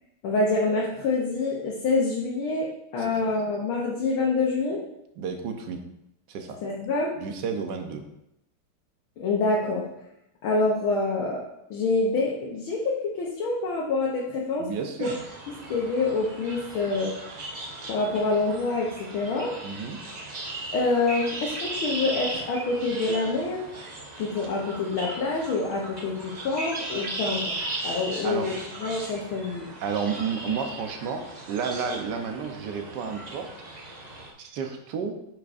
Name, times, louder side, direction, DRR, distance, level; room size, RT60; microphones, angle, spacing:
voice 1, 0.2-2.7 2.9-4.8 6.6-7.1 9.2-9.9 10.4-11.4 11.7-14.7 15.0-15.1 15.7-17.1 17.9-19.5 20.7-23.7 24.2-27.5 27.8-29.7, left 3 dB, 75° left, -3 dB, 1.8 m, -26 dB
voice 2, 5.2-5.8 6.3-6.6 7.2-8.0 14.6-15.2 19.6-20.0 28.2-28.5 29.8-33.5 34.4-35.2, right 6 dB, 65° right, 5 dB, 1.3 m, -31 dB
sound 1, 15.0-34.3, right 2 dB, 85° right, 0.3 m, -37 dB
9.0 x 6.1 x 2.6 m, 0.83 s
omnidirectional pair, 2.4 m